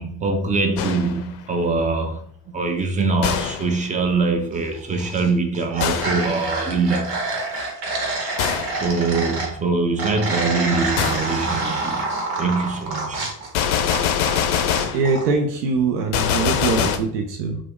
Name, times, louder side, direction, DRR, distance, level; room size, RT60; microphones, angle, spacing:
voice 1, 0.0-2.3 2.5-7.2 8.8-12.0 12.4-13.2, right 3 dB, 15° right, 4 dB, 0.4 m, -23 dB
Gunshot gunfire, 0.8-1.3 3.2-3.8 5.8-6.3 8.4-8.8 11.0-11.3 13.5-15.1 16.1-17.0, left 8 dB, 60° left, 0.5 m, -23 dB
sound 1, 4.7-5.3 5.5-9.5 10.0-14.4 14.7-15.3, right 2 dB, 50° right, 1.1 m, -27 dB
voice 2, 14.9-17.6, right 4 dB, 70° right, 5 dB, 0.6 m, -22 dB
2.7 x 2.4 x 3.5 m, 0.64 s
figure-of-eight pair, 50°, 50 cm